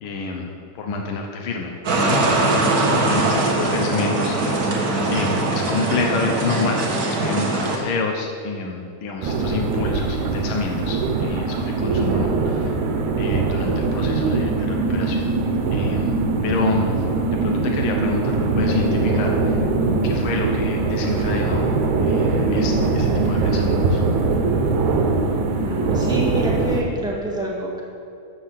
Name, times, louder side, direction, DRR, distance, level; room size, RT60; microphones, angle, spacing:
voice 1, 0.0-2.2 3.1-4.8 5.1-6.8 7.2-12.8 13.2-15.3 15.7-16.2 16.4-17.0 17.4-19.6 20.0-21.8 22.0-24.0, left 4 dB, 70° left, 1 dB, 1.2 m, -28 dB
sound 1, 1.8-7.8, right 2 dB, 50° right, 1.1 m, -21 dB
sound 2, 9.2-26.8, right 3 dB, 75° right, 2.3 m, -21 dB
voice 2, 25.6-27.8, right 1 dB, ahead, -4 dB, 1.3 m, -27 dB
12.5 x 6.0 x 7.5 m, 2.5 s
omnidirectional pair, 3.6 m